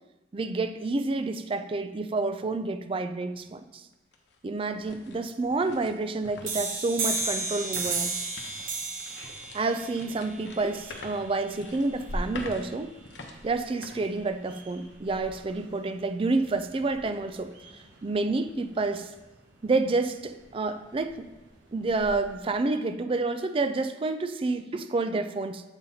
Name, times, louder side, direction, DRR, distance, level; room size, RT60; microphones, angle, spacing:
voice 1, 0.3-3.8 4.4-8.2 9.5-12.9 13.4-17.5 18.0-19.1 19.6-21.3 21.7-25.6, right 3 dB, 30° right, 9 dB, 0.4 m, -29 dB
sound 1, 3.3-3.4 3.9-14.8 15.2-15.4 16.0-16.3, left 2 dB, 70° left, 0.8 m, -47 dB
sound 2, 6.5-11.9, right 3 dB, 50° right, 0.8 m, -33 dB
sound 3, 10.2-22.4, equal, 85° right, 1.1 m, -46 dB
7.9 x 4.0 x 4.1 m, 1.0 s
head